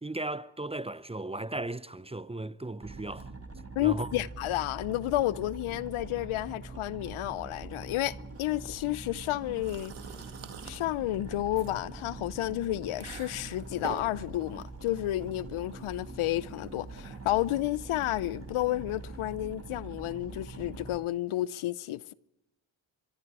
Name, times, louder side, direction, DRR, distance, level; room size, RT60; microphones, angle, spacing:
voice 1, 0.0-3.3 3.8-4.1, right 2 dB, 10° right, 0.7 m, -36 dB
sound 1, 2.8-21.0, right 3 dB, 30° right, 2.7 m, -44 dB
voice 2, 3.8-9.9 10.6-22.1, left 15 dB, 80° left, 0.7 m, -31 dB
sound 2, 8.4-19.3, right 7 dB, 80° right, 2.5 m, -49 dB
25.0 x 24.0 x 4.8 m
supercardioid pair, 50°, 48 cm